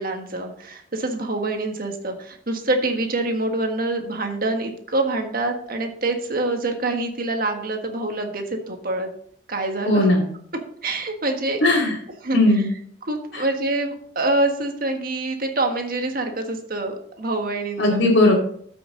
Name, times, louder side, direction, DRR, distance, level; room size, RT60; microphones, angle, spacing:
voice 1, 0.0-9.1 9.5-10.1 10.8-11.6 12.2-12.4 13.1-18.1, right 2 dB, 50° right, 4 dB, 1.5 m, -26 dB
voice 2, 9.8-10.3 11.6-12.0 12.3-12.7 13.3-13.4 17.8-18.3, left 2 dB, 65° left, -7 dB, 2.5 m, -17 dB
13.5 x 6.0 x 3.9 m, 0.62 s
head